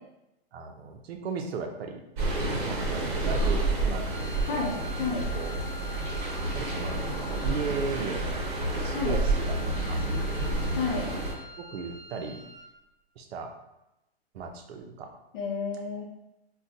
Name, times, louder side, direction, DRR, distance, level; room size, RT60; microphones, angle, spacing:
voice 1, 0.5-2.0 2.5-4.7 5.3-5.6 6.5-7.0 7.4-9.6 9.9-10.7 11.6-12.5 13.2-13.5 14.3-15.1, right 4 dB, 75° right, 4 dB, 0.6 m, -36 dB
sound 1, 2.2-11.3, right 2 dB, 50° right, 1.1 m, -29 dB
Wind instrument woodwind instrument, 3.9-12.8, left 2 dB, 20° right, 0.7 m, -45 dB
voice 2, 4.5-5.3 8.9-9.2 10.7-11.1 15.3-16.0, left 4 dB, 50° left, -4 dB, 0.7 m, -31 dB
3.9 x 2.3 x 2.6 m, 0.91 s
hypercardioid pair, 145°, 32 cm